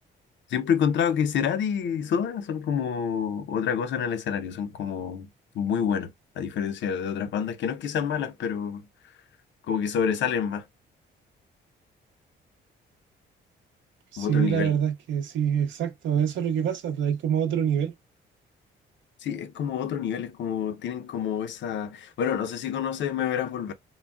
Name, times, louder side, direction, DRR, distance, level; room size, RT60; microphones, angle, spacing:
voice 1, 0.5-5.3 5.5-6.1 6.4-8.9 9.7-10.6 14.2-14.7 19.2-23.7, left 7 dB, 70° left, 0.6 m, -28 dB
voice 2, 14.1-17.9, right 8 dB, 75° right, 0.7 m, -25 dB
3.9 x 2.0 x 2.2 m
cardioid pair, 90°, 20 cm